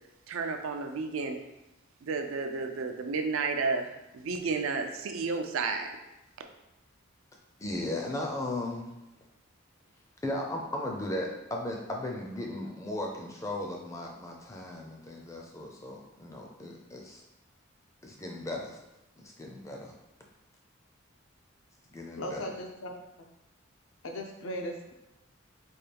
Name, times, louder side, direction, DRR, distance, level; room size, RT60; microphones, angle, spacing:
voice 1, 0.3-1.4 2.0-5.9, right 4 dB, 80° right, 5 dB, 0.4 m, -32 dB
voice 2, 7.6-8.9 10.2-17.2 18.0-18.8 19.4-19.9 21.9-22.4, left 1 dB, 15° left, 0 dB, 0.4 m, -36 dB
voice 3, 22.2-22.9 24.0-24.9, equal, 75° left, 2 dB, 0.6 m, -37 dB
4.4 x 2.2 x 3.3 m, 0.95 s
head